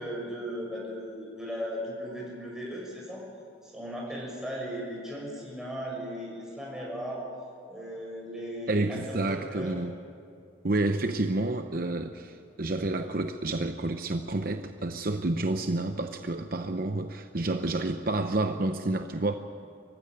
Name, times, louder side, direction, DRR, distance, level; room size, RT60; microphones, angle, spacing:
voice 1, 0.0-3.2 3.6-7.2 7.7-9.8, equal, 5° right, -3 dB, 6.3 m, -37 dB
voice 2, 8.7-10.0 10.6-19.4, right 2 dB, 50° right, 7 dB, 0.8 m, -29 dB
24.5 x 15.5 x 9.7 m, 2.4 s
head